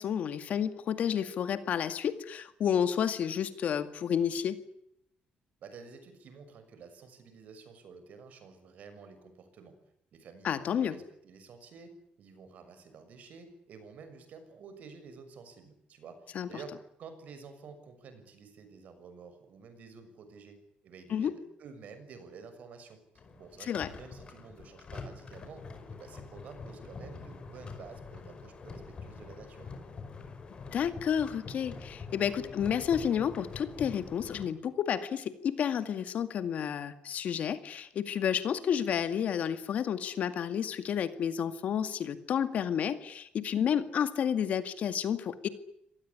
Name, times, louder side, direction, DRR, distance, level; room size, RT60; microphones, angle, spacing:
voice 1, 0.0-4.6 10.4-11.0 16.3-16.5 21.1-21.3 23.7-23.9 30.7-45.5, left 8 dB, 55° left, 11 dB, 2.1 m, -31 dB
voice 2, 5.6-9.7 10.1-16.7 17.0-23.0 23.4-25.6 25.9-29.7, right 5 dB, 55° right, 9 dB, 6.6 m, -50 dB
sound 1, 23.1-34.4, left 4 dB, 30° left, 5.0 m, -45 dB
26.5 x 19.0 x 9.9 m, 0.75 s
cardioid pair, 160°, 3 cm